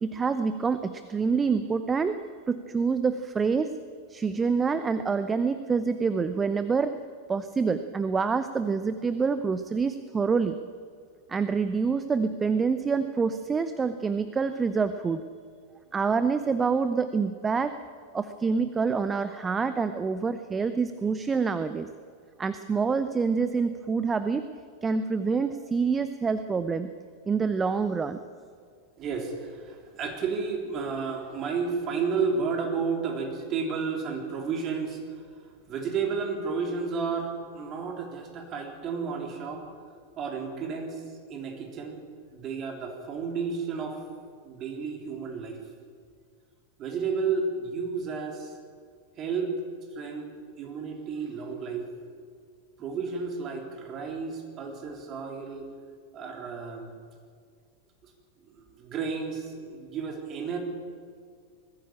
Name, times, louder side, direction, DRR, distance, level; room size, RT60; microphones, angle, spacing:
voice 1, 0.0-2.2 2.5-3.7 4.1-7.0 7.3-10.6 11.3-15.2 15.9-17.8 18.1-21.9 22.4-24.5 24.8-26.9 27.3-28.2, right 5 dB, 15° right, 11 dB, 0.7 m, -26 dB
voice 2, 29.0-35.0 35.7-39.6 40.2-41.0 41.3-42.0 42.3-44.0 44.4-45.6 46.8-48.5 49.2-49.5 49.9-50.3 50.6-51.9 52.8-55.7 56.1-56.9 58.5-60.6, right 5 dB, 30° right, 3 dB, 3.7 m, -32 dB
20.5 x 15.0 x 8.6 m, 2.1 s
figure-of-eight pair, 90°, 0 cm